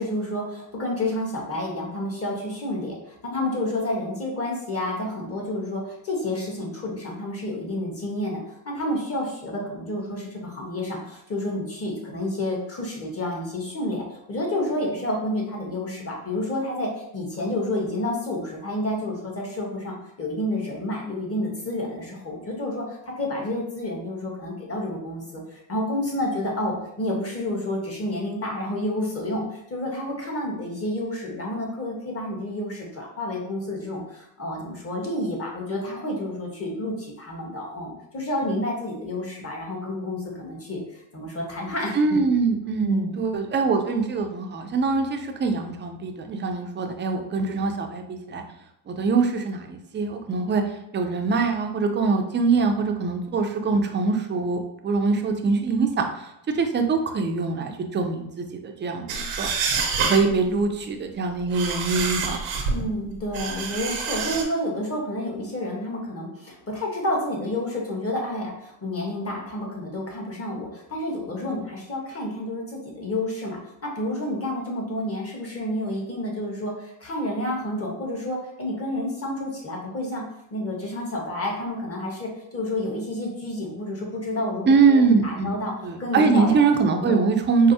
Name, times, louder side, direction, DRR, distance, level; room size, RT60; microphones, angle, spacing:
voice 1, 0.0-42.0 42.8-43.2 62.7-80.2 80.5-85.7 86.0-86.6 87.0-87.2, left 1 dB, 30° left, -1 dB, 1.2 m, -30 dB
voice 2, 41.9-48.4 48.9-50.6 50.9-59.6 60.0-62.4 84.7-85.6 85.8-87.7, right 4 dB, 25° right, 4 dB, 0.4 m, -23 dB
sound 1, 59.1-60.3 61.3-62.8 63.3-64.4, right 5 dB, 90° right, 0.8 m, -27 dB
4.5 x 2.0 x 2.7 m, 0.80 s
cardioid pair, 90°, 49 cm